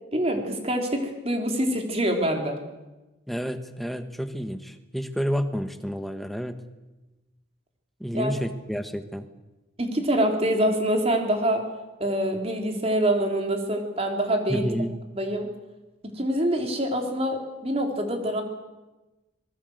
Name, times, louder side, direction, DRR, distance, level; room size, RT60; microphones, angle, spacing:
voice 1, 0.1-2.6 8.1-8.3 9.8-11.6 12.0-14.7 15.2-15.5 16.0-18.4, right 1 dB, 30° right, 3 dB, 3.5 m, -25 dB
voice 2, 3.3-6.6 8.0-9.3 14.5-14.9, equal, ahead, 8 dB, 1.5 m, -30 dB
25.5 x 21.5 x 8.0 m, 1.1 s
head